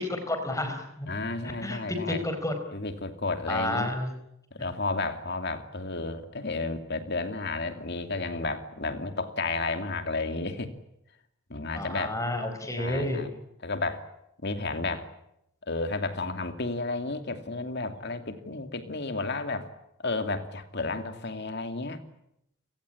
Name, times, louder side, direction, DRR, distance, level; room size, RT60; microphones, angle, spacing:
voice 1, 0.3-1.1 1.6-2.6 3.5-4.1 11.7-13.3, left 1 dB, 15° left, 7 dB, 4.6 m, -30 dB
voice 2, 1.1-2.2 2.7-3.9 4.5-10.7 11.5-12.2 12.8-13.3 13.6-14.1 14.4-15.1 15.7-19.7 20.0-22.0, left 3 dB, 50° left, 8 dB, 2.7 m, -32 dB
30.0 x 18.0 x 10.0 m, 0.81 s
head